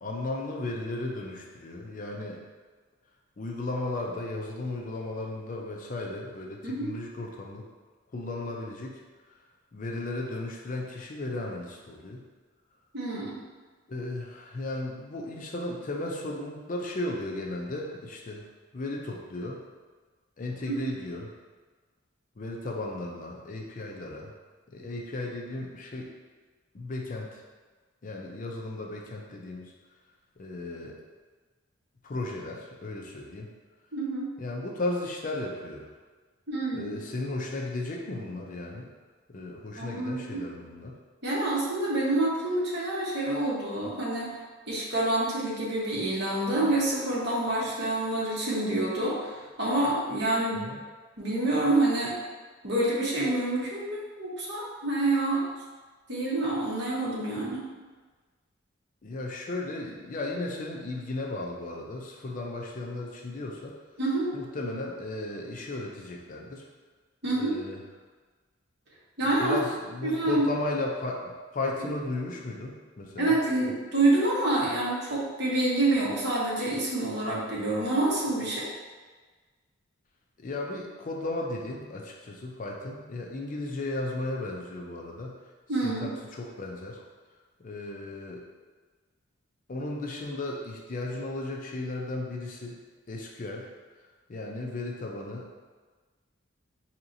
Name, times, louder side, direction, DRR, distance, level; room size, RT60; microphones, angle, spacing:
voice 1, 0.0-2.4 3.4-7.7 8.1-8.9 9.7-12.2 13.9-18.4 18.7-19.6 20.4-21.3 22.4-24.3 24.7-26.1 26.7-27.4 28.0-29.7 30.4-31.0 32.0-33.5 34.4-35.9 36.7-38.9 39.3-41.0 50.5-50.8 59.0-63.7 64.3-66.6 67.4-67.8 69.4-73.4 80.4-85.3 85.8-87.0 87.6-88.4 89.7-92.8 93.1-93.7 94.3-95.5, left 2 dB, 40° left, 0 dB, 0.4 m, -35 dB
voice 2, 12.9-13.4 20.6-20.7 33.9-34.3 36.5-36.9 39.8-40.4 41.2-44.3 44.7-50.6 51.2-52.1 52.6-55.4 56.1-57.7 64.0-64.3 67.2-67.5 69.2-69.6 70.0-70.5 73.2-78.7 85.7-86.1, right 2 dB, 55° right, -5 dB, 1.0 m, -27 dB
4.7 x 2.9 x 2.6 m, 1.4 s
head